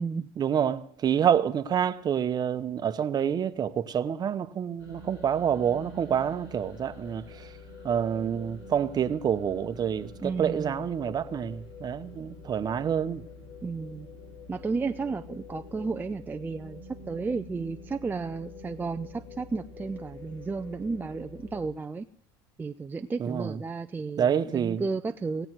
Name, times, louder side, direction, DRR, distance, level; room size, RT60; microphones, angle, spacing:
voice 1, 0.4-7.5 7.8-13.2 23.2-23.6 24.2-24.8, right 8 dB, 35° right, 0.9 m, -27 dB
sound 1, 4.8-21.6, left 3 dB, 85° left, 6.3 m, -46 dB
voice 2, 10.2-10.8 13.6-14.1 14.5-22.1 22.6-25.5, right 4 dB, 15° right, 0.4 m, -33 dB
18.5 x 7.9 x 6.1 m
supercardioid pair, 95°, 12 cm